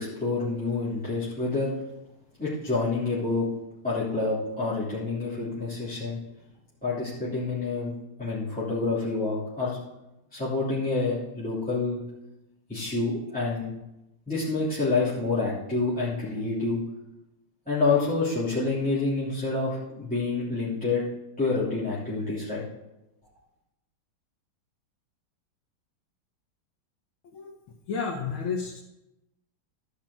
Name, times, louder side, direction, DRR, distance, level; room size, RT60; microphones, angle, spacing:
voice 1, 0.0-1.7 2.4-3.5 3.8-6.2 6.8-7.9 8.2-9.8 10.3-12.0 12.7-13.7 14.3-16.8 17.7-21.0 21.4-22.6, left 3 dB, 5° left, -11 dB, 3.1 m, -28 dB
voice 2, 27.9-28.8, left 5 dB, 85° left, -1 dB, 2.0 m, -31 dB
13.5 x 5.7 x 7.3 m, 0.95 s
omnidirectional pair, 2.2 m